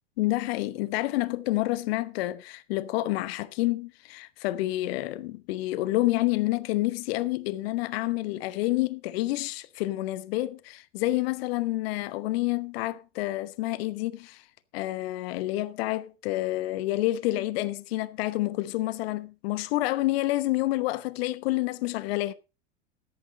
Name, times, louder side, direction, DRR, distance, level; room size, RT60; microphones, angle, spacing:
voice 1, 0.2-14.4 14.7-22.3, left 17 dB, 60° left, 1.0 m, -28 dB
13.5 x 10.5 x 4.0 m
hypercardioid pair, 95°, 35 cm